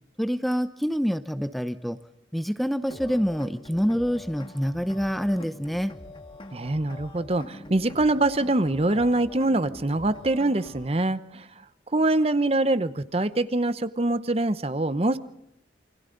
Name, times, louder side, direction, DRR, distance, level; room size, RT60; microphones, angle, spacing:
voice 1, 0.2-2.0 2.3-5.9, equal, ahead, 10 dB, 0.7 m, -26 dB
sound 1, 2.9-10.9, left 1 dB, 25° left, 1.5 m, -44 dB
voice 2, 6.5-11.5 11.9-15.2, right 2 dB, 30° right, 13 dB, 0.8 m, -24 dB
28.5 x 25.0 x 4.0 m, 0.81 s
head